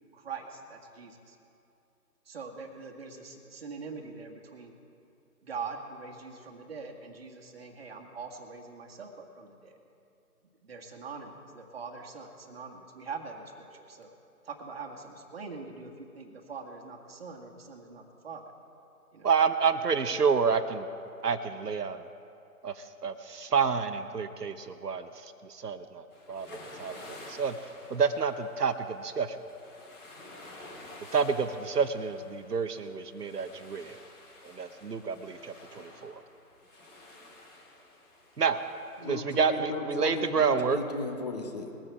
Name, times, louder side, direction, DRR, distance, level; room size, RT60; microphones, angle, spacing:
voice 1, 0.1-1.4 2.3-4.7 5.4-9.8 10.6-14.1 14.4-18.4 19.1-19.3 37.8-37.9 39.0-39.1, right 5 dB, 40° right, 1 dB, 1.7 m, -43 dB
voice 2, 19.2-20.9 21.2-22.1 22.6-22.7 23.0-25.1 25.4-26.5 26.8-27.5 27.9-29.3 31.1-34.0 34.5-36.1 38.4-38.6 39.1-40.8, right 5 dB, 85° right, 10 dB, 1.0 m, -29 dB
sound 1, 26.1-39.1, left 2 dB, 75° left, 4.0 m, -50 dB
voice 3, 39.0-41.7, left 3 dB, 25° left, 3 dB, 1.3 m, -36 dB
21.0 x 8.9 x 4.6 m, 2.7 s
figure-of-eight pair, 155°, 46 cm